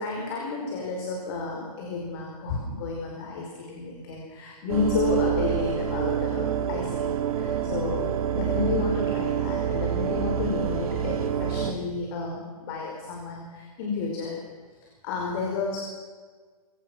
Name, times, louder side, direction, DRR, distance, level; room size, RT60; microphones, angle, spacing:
voice 1, 0.0-8.1 8.3-14.4 15.0-15.8, left 4 dB, 40° left, 0 dB, 4.8 m, -31 dB
sound 1, 4.7-11.7, right 9 dB, 65° right, 2.4 m, -27 dB
26.0 x 17.0 x 6.2 m, 1.5 s
hypercardioid pair, 155°, 20 cm